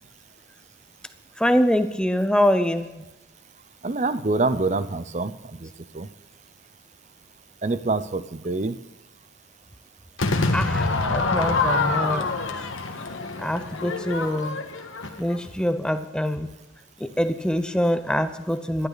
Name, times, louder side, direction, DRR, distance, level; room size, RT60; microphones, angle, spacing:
voice 1, 1.4-3.0 10.5-12.3 13.4-14.6 15.2-16.5 17.0-18.9, equal, 5° left, 10 dB, 0.7 m, -24 dB
voice 2, 3.8-5.3 5.6-5.7 5.9-6.1 7.6-8.8, right 3 dB, 35° right, 14 dB, 0.6 m, -25 dB
Crowd / Fireworks, 10.2-15.4, left 3 dB, 85° left, 1.6 m, -26 dB
18.5 x 12.0 x 4.1 m, 1.0 s
head